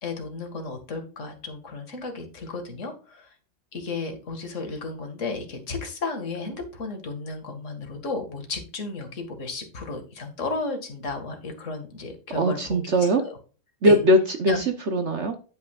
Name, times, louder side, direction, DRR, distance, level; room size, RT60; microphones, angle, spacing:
voice 1, 0.0-3.3 3.7-13.4 13.8-14.0 14.5-14.6, left 3 dB, 40° left, 5 dB, 2.1 m, -33 dB
voice 2, 12.3-13.2 13.8-15.4, equal, 50° right, 8 dB, 0.9 m, -21 dB
9.4 x 8.6 x 2.4 m, 0.36 s
omnidirectional pair, 2.1 m